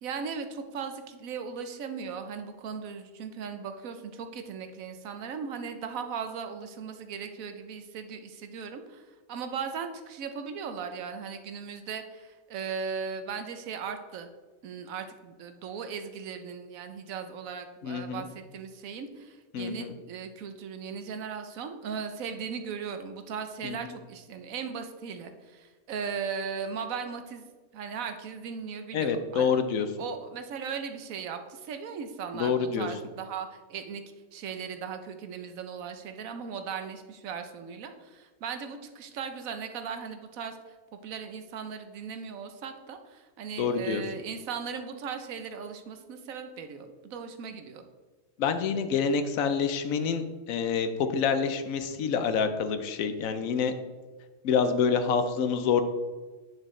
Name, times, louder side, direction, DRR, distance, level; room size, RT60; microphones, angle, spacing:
voice 1, 0.0-14.3 14.6-27.4 27.7-29.6 30.0-34.0 34.3-40.8 41.0-47.8, right 6 dB, 80° right, 7 dB, 1.2 m, -38 dB
voice 2, 17.8-18.2 19.5-19.9 23.6-23.8 28.9-29.9 32.3-32.9 43.6-44.0 48.4-53.7 54.4-55.8, left 6 dB, 80° left, 9 dB, 1.1 m, -27 dB
9.1 x 6.5 x 3.2 m, 1.3 s
omnidirectional pair, 1.4 m